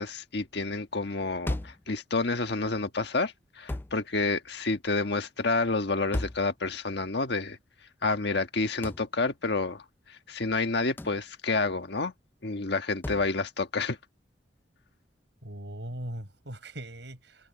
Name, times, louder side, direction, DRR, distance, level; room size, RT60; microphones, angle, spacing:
voice 1, 0.0-7.6 8.0-9.8 10.1-12.1 12.4-14.0, left 3 dB, 65° left, 1.5 m, -29 dB
sound 1, 1.5-1.9 3.7-4.0 6.1-6.5 8.8-9.1 11.0-11.2 13.0-13.3, left 1 dB, 10° left, 0.3 m, -34 dB
voice 2, 15.4-17.5, right 1 dB, 75° right, 6.7 m, -40 dB
head